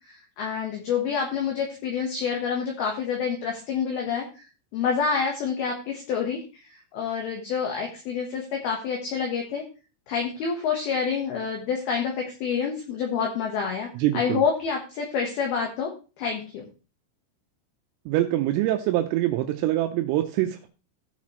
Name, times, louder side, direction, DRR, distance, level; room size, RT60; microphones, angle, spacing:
voice 1, 0.1-4.4 4.7-6.6 6.9-9.6 10.1-13.9 14.1-15.9 16.2-16.6, left 6 dB, 65° left, 1 dB, 2.6 m, -28 dB
voice 2, 14.0-14.4 18.1-20.7, right 14 dB, 85° right, 4 dB, 3.3 m, -24 dB
16.5 x 5.8 x 3.1 m, 0.33 s
omnidirectional pair, 6.0 m